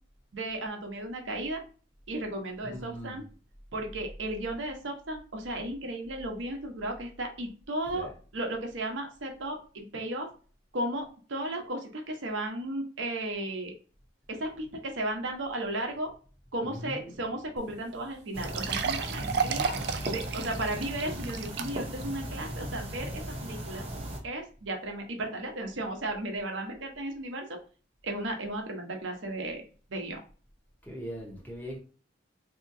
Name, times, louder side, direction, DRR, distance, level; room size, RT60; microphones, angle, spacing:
voice 1, 0.3-1.6 2.1-3.2 3.7-8.1 8.3-10.3 10.7-13.7 14.3-16.1 16.5-19.7 20.1-23.8 24.2-27.4 28.0-29.6 29.9-30.2, right 1 dB, 70° right, 0.8 m, -35 dB
voice 2, 2.6-3.2 7.9-8.1 16.6-17.2 19.2-19.7 30.8-31.8, equal, 10° left, 0.8 m, -40 dB
sound 1, 17.6-17.7 17.9-18.0 18.4-22.0 22.5-22.6 23.2-23.3, right 6 dB, 55° right, 0.4 m, -33 dB
sound 2, 18.3-24.2, right 1 dB, 30° right, 0.8 m, -37 dB
3.6 x 2.8 x 2.6 m
head